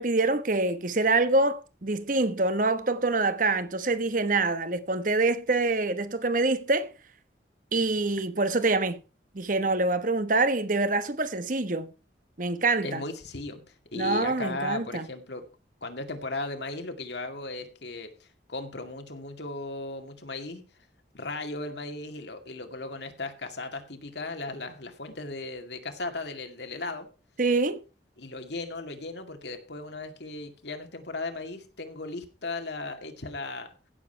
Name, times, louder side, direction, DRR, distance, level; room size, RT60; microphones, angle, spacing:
voice 1, 0.0-6.9 7.7-9.0 9.3-11.9 12.4-13.0 13.9-15.1 27.4-27.8, right 3 dB, 45° right, 1.1 m, -25 dB
voice 2, 12.8-15.4 15.8-20.6 21.1-27.1 28.2-33.7, left 2 dB, 70° left, 2.2 m, -36 dB
16.0 x 7.4 x 4.6 m
head